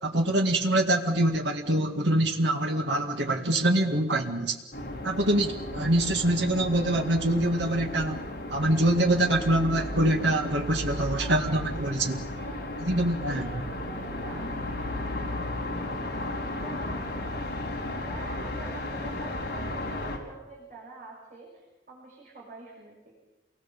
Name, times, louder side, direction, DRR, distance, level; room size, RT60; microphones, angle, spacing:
voice 1, 0.0-4.6 5.0-12.2 12.8-13.5, right 1 dB, 80° right, 3 dB, 2.1 m, -25 dB
sound 1, 4.7-20.2, left 1 dB, 60° left, 4.0 m, -34 dB
voice 2, 11.2-11.8 12.3-12.7 13.2-17.7 18.0-23.2, right 2 dB, 45° right, -4 dB, 6.4 m, -47 dB
28.0 x 20.0 x 7.4 m, 1.1 s
head